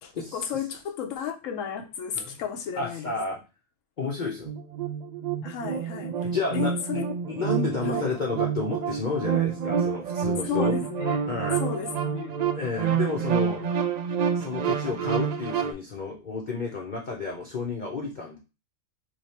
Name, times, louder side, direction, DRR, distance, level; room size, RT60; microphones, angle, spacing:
voice 1, 0.0-3.1 5.4-7.3 7.8-8.1 10.5-11.3 11.6-12.4 13.5-13.7, left 8 dB, 90° left, 1.0 m, -34 dB
voice 2, 2.8-3.4 4.0-4.5 6.2-7.0 7.3-10.7 11.3-11.6 12.5-13.6 14.4-18.4, left 4 dB, 45° left, 0.7 m, -31 dB
sound 1, 4.4-15.7, right 7 dB, 85° right, 0.3 m, -28 dB
3.3 x 2.8 x 4.1 m
omnidirectional pair, 1.3 m